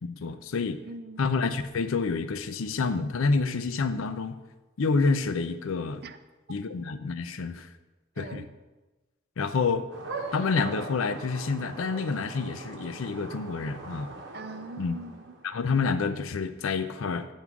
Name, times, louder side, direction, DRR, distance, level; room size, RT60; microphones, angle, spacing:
voice 1, 0.0-0.8 1.2-4.4 4.8-6.0 6.5-7.7 8.2-8.4 9.4-9.9 10.3-14.1 14.8-15.0 15.4-17.3, left 4 dB, 80° left, 11 dB, 0.5 m, -28 dB
voice 2, 0.8-1.2 6.0-6.2 6.5-6.6 8.2-8.5 14.3-15.5, right 3 dB, 50° right, 10 dB, 0.5 m, -42 dB
sound 1, 9.9-15.6, right 2 dB, 65° right, 1.0 m, -41 dB
9.5 x 3.6 x 6.0 m, 1.2 s
head